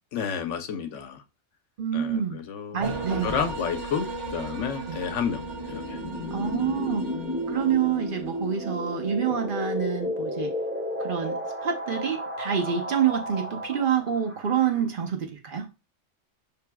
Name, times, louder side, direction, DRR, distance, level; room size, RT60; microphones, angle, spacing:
voice 1, 0.1-1.2 1.9-5.4 5.7-6.0, left 7 dB, 85° left, 1.0 m, -31 dB
voice 2, 1.8-2.4 2.7-3.4 4.9-5.0 6.3-7.1 7.5-10.5 11.0-15.7, right 8 dB, 55° right, 0.8 m, -27 dB
sound 1, 2.8-8.8, right 3 dB, 80° right, 1.2 m, -36 dB
sound 2, 5.3-14.8, left 1 dB, 10° right, 0.7 m, -33 dB
5.9 x 3.4 x 2.2 m
omnidirectional pair, 1.2 m